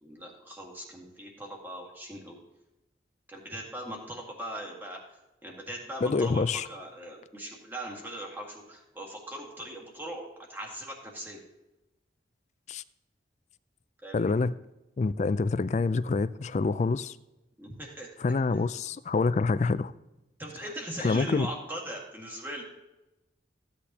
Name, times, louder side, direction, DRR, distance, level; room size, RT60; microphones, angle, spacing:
voice 1, 0.0-2.4 3.3-5.0 5.4-11.4 14.0-14.3 17.6-18.1 20.4-22.6, equal, 10° right, 1.8 m, -40 dB
voice 2, 6.0-6.7 12.7-12.8 14.1-14.5 15.0-17.2 18.2-19.9 21.0-21.5, left 4 dB, 40° left, 0.3 m, -26 dB
15.0 x 8.4 x 2.8 m
head